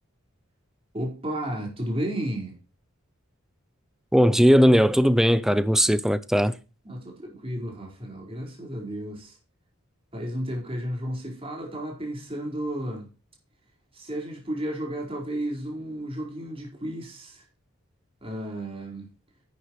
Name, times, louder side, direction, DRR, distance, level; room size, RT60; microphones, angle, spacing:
voice 1, 0.9-2.6 6.8-9.4 10.1-13.1 13.9-17.4 18.2-19.1, right 1 dB, 25° right, 4.5 m, -33 dB
voice 2, 4.1-6.6, equal, ahead, 0.5 m, -18 dB
11.0 x 10.0 x 3.1 m
head